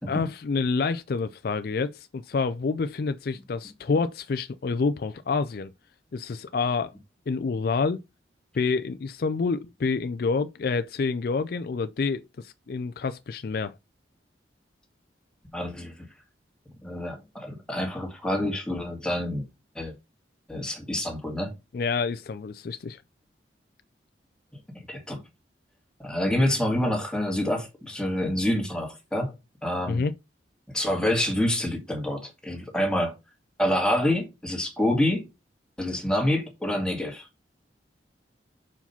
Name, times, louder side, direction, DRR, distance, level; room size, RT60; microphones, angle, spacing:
voice 1, 0.1-5.7 6.1-6.9 7.3-8.0 8.5-13.7 21.7-23.0 29.9-30.1, left 4 dB, 55° left, 0.4 m, -28 dB
voice 2, 15.5-15.9 16.8-19.5 19.8-19.9 20.5-21.5 24.9-25.2 26.0-29.3 29.6-30.0 30.7-33.1 33.6-35.3 35.8-37.3, left 1 dB, 5° left, 1.9 m, -27 dB
5.8 x 4.8 x 5.4 m
head